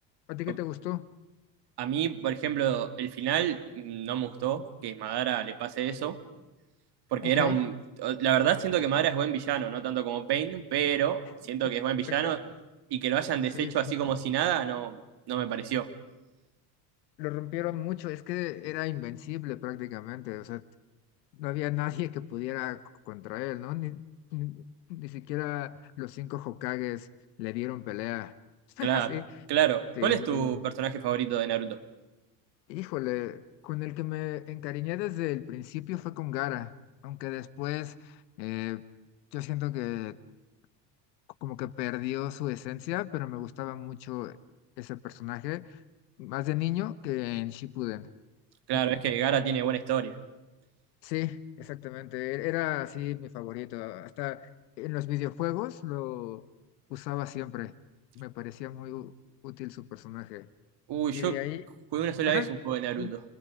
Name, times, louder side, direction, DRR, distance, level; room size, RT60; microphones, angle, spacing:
voice 1, 0.3-1.1 7.2-7.6 12.1-12.4 13.5-14.0 17.2-20.6 21.4-24.0 24.3-27.1 27.4-28.3 28.8-29.3 30.0-30.5 32.7-36.7 37.0-38.8 39.3-40.2 41.4-44.4 44.8-45.8 46.2-48.1 48.7-48.8 49.3-49.4 51.0-54.5 54.8-56.5 56.9-57.7 58.1-59.1 59.4-60.5 61.1-61.6 62.2-62.5 63.0-63.1, left 16 dB, 80° left, 1.4 m, -34 dB
voice 2, 1.8-6.2 7.1-7.7 8.0-11.2 11.5-12.4 12.9-15.0 15.3-15.9 28.8-29.1 29.5-31.8 48.7-50.1 60.9-61.4 61.9-63.2, right 10 dB, 50° right, 2.6 m, -28 dB
30.0 x 29.0 x 5.2 m
supercardioid pair, 90°, 50 cm